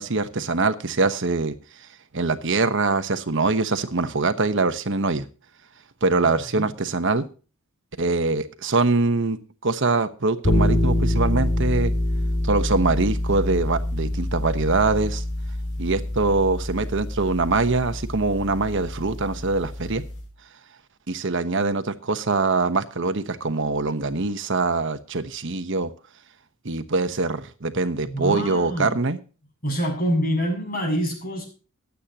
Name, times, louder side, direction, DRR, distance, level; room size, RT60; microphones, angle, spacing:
voice 1, 0.0-1.5 2.1-5.2 6.0-7.2 8.0-11.9 12.4-15.2 15.8-20.0 21.1-25.9 26.6-29.2, right 3 dB, 60° right, 10 dB, 1.1 m, -23 dB
sound 1, 10.4-20.3, left 1 dB, 85° left, 4.7 m, -26 dB
voice 2, 28.0-29.0 29.6-31.4, equal, 40° left, 2 dB, 7.4 m, -26 dB
23.0 x 8.4 x 2.9 m, 0.36 s
head